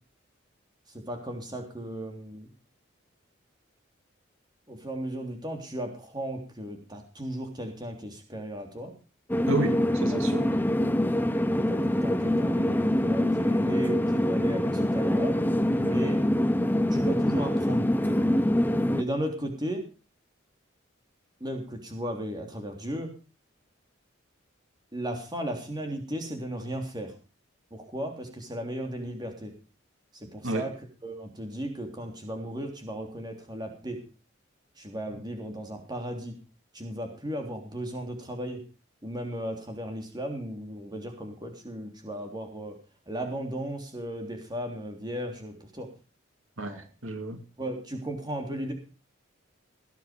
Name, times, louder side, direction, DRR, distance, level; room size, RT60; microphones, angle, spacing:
voice 1, 0.9-2.5 4.7-8.9 10.1-10.8 11.5-15.4 15.7-16.2 16.7-18.2 18.9-19.8 21.4-23.1 24.9-27.1 27.7-29.5 30.1-30.7 31.0-34.0 34.8-36.4 36.7-38.6 39.0-42.8 43.1-45.9 46.6-46.9 47.6-48.7, right 1 dB, 20° right, 4 dB, 3.3 m, -36 dB
sound 1, 9.3-19.0, left 1 dB, 10° left, 0.7 m, -25 dB
voice 2, 9.5-10.6 30.4-30.6 35.1-35.2 46.6-47.4, right 2 dB, 90° right, 6 dB, 2.8 m, -31 dB
18.0 x 9.8 x 5.1 m, 0.34 s
head